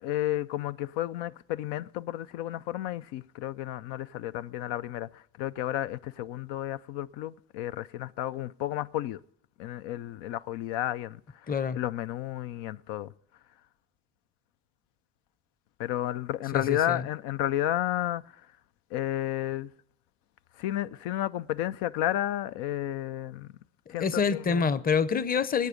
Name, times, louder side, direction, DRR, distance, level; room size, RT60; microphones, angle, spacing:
voice 1, 0.0-9.2 9.6-11.2 11.7-13.1 15.8-18.2 18.9-19.7 20.6-23.5 23.9-24.7, left 13 dB, 90° left, 0.5 m, -32 dB
voice 2, 11.5-11.8 16.5-17.1 24.0-25.7, left 6 dB, 20° left, 0.6 m, -27 dB
21.5 x 8.3 x 5.1 m
cardioid pair, 80°, 40 cm